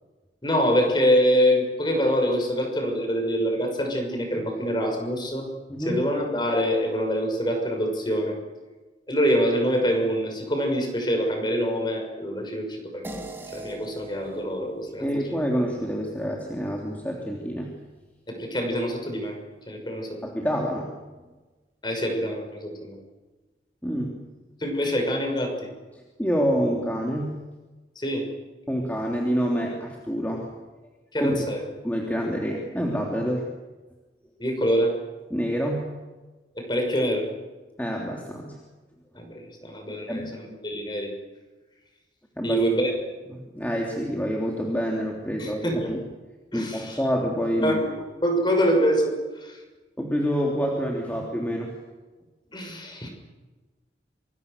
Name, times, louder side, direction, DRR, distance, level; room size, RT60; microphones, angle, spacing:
voice 1, 0.4-5.5 5.8-8.4 9.1-13.3 13.5-15.1 18.3-19.4 19.7-20.2 21.8-23.0 24.6-25.7 27.9-28.3 31.1-31.6 34.4-35.0 36.6-37.3 39.1-41.1 42.4-42.9 45.4-46.0 46.5-47.0 47.6-47.9 48.2-49.6 52.5-53.1, equal, 25° left, 3 dB, 6.2 m, -25 dB
voice 2, 5.7-6.0 15.0-17.7 20.2-20.9 23.8-24.2 25.9-27.4 28.7-30.5 31.2-31.3 31.8-33.5 35.3-35.9 37.8-38.6 40.1-40.3 42.4-42.7 43.3-46.0 46.5-47.8 50.0-51.8, equal, 10° left, -1 dB, 3.1 m, -27 dB
sound 1, 13.0-17.8, right 2 dB, 10° right, 3.0 m, -44 dB
26.5 x 26.0 x 6.8 m, 1.2 s
head